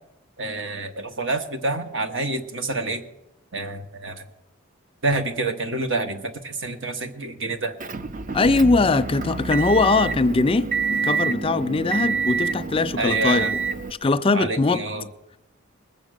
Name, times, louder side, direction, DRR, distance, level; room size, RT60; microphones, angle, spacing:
voice 1, 0.4-3.0 3.5-4.2 5.0-7.8 13.0-13.5 14.3-15.1, right 2 dB, 65° right, 1.4 m, -27 dB
Motor vehicle (road) / Engine, 7.8-13.9, right 5 dB, 40° right, 0.6 m, -27 dB
voice 2, 8.3-13.6 14.0-14.9, left 3 dB, 25° left, 0.4 m, -21 dB
20.5 x 7.2 x 6.6 m
head